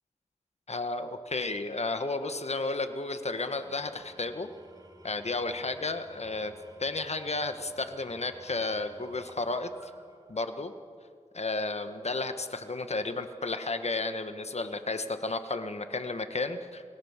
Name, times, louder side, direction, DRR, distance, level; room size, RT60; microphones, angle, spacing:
voice 1, 0.7-4.5 5.0-6.5 6.8-9.9 10.3-10.7 11.3-16.8, left 3 dB, 60° left, 9 dB, 1.6 m, -32 dB
Engine / Tools, 3.3-10.8, right 2 dB, 30° right, 2.4 m, -55 dB
28.0 x 18.0 x 7.5 m, 2.3 s
wide cardioid pair, 75°, 13 cm